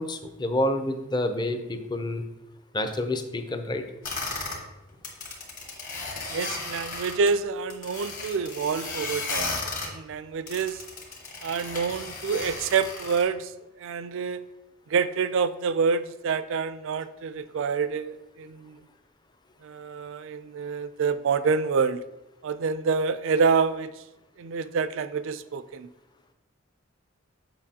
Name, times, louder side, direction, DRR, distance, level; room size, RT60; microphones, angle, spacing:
voice 1, 0.0-2.2 2.7-3.8, left 1 dB, 20° left, 7 dB, 0.5 m, -28 dB
sound 1, 4.0-4.6 4.9-7.3 7.7-9.9 10.5-13.2, left 3 dB, 40° left, 1.4 m, -34 dB
voice 2, 6.3-9.5 9.8-10.8 11.4-13.5 13.8-14.4 14.9-18.8 19.6-22.0 22.4-23.9 24.4-25.9, right 5 dB, 65° right, 13 dB, 0.4 m, -27 dB
7.4 x 5.2 x 2.8 m, 0.93 s
head